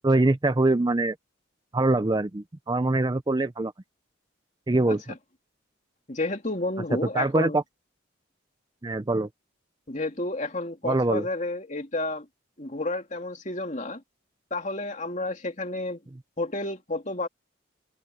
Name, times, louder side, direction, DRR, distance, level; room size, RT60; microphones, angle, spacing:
voice 1, 0.0-1.2 1.7-3.7 4.7-5.0 7.1-7.6 8.8-9.3 10.8-11.3, right 2 dB, 20° right, 0.5 m, -23 dB
voice 2, 6.1-7.6 9.9-12.3 12.6-14.0 14.5-16.0 16.4-17.3, left 2 dB, 35° left, 2.8 m, -31 dB
head